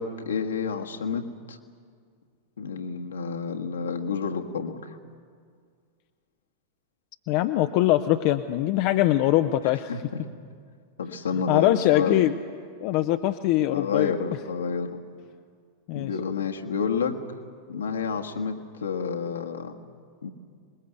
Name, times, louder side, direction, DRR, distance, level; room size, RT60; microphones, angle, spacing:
voice 1, 0.0-1.6 2.6-4.9 9.9-10.2 11.0-12.3 13.7-15.0 15.9-17.2 17.7-19.7 20.2-20.3, left 5 dB, 70° left, 3 dB, 1.7 m, -29 dB
voice 2, 7.3-9.9 11.5-12.3 12.8-14.2 15.9-16.1, left 15 dB, 45° left, 8 dB, 0.7 m, -22 dB
26.5 x 21.0 x 8.0 m, 2.1 s
figure-of-eight pair, 90°, 0 cm